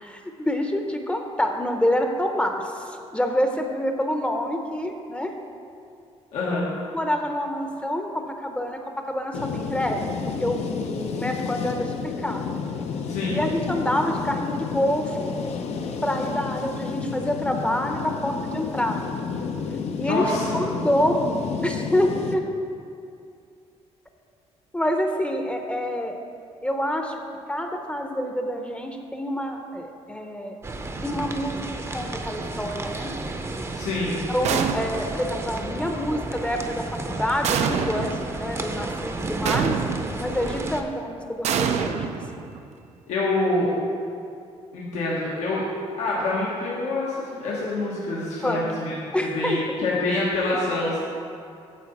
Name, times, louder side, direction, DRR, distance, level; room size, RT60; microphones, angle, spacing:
voice 1, 0.0-5.3 6.9-12.4 13.3-15.4 16.0-19.0 20.0-20.3 20.5-22.5 24.7-26.2 26.6-27.2 27.5-30.6 31.0-31.6 31.9-33.1 34.3-39.8 40.2-42.1 48.4-48.6 49.1-49.6, equal, 10° left, 4 dB, 0.7 m, -27 dB
voice 2, 6.3-6.7 13.0-13.4 20.0-20.6 33.7-34.2 43.1-43.7 44.7-45.6 46.0-49.0 49.2-51.0, left 2 dB, 90° left, -6 dB, 1.5 m, -26 dB
sound 1, 9.3-22.3, left 5 dB, 70° left, 0.7 m, -31 dB
sound 2, 30.6-40.8, right 2 dB, 25° right, 0.7 m, -32 dB
sound 3, 34.4-35.2 37.4-38.2 39.4-40.2 41.4-42.7, right 7 dB, 75° right, 0.5 m, -26 dB
9.3 x 4.0 x 7.1 m, 2.5 s
cardioid pair, 110°, 12 cm